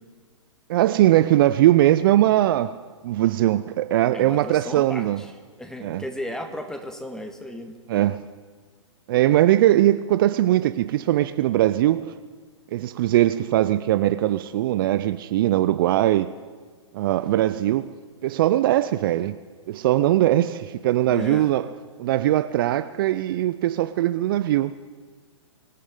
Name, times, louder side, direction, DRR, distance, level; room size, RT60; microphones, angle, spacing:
voice 1, 0.7-5.2 5.8-6.0 7.9-8.2 9.1-12.2 12.7-16.3 16.9-17.9 18.2-19.4 19.7-21.7 22.0-24.7, right 14 dB, 45° right, 0.5 m, -20 dB
voice 2, 4.1-5.3 5.6-7.8 21.1-21.5, left 1 dB, 5° left, 1.6 m, -35 dB
25.0 x 14.0 x 3.8 m
hypercardioid pair, 120°, 16 cm